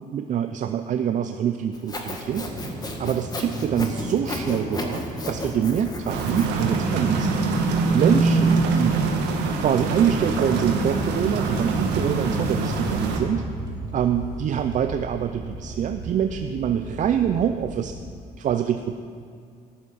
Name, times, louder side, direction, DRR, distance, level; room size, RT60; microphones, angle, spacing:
voice 1, 0.1-2.7 3.0-7.3 7.9-9.0 9.6-13.4 13.9-17.9 18.4-18.9, right 9 dB, 45° right, 7 dB, 0.5 m, -25 dB
Sawing, 1.7-6.8, left 2 dB, 25° left, 1.7 m, -33 dB
sound 1, 2.3-7.4 9.5-18.0, right 1 dB, 20° right, 2.6 m, -36 dB
sound 2, 6.1-13.2, right 3 dB, 90° right, 1.7 m, -24 dB
14.0 x 11.5 x 5.6 m, 2.3 s
cardioid pair, 110°, 17 cm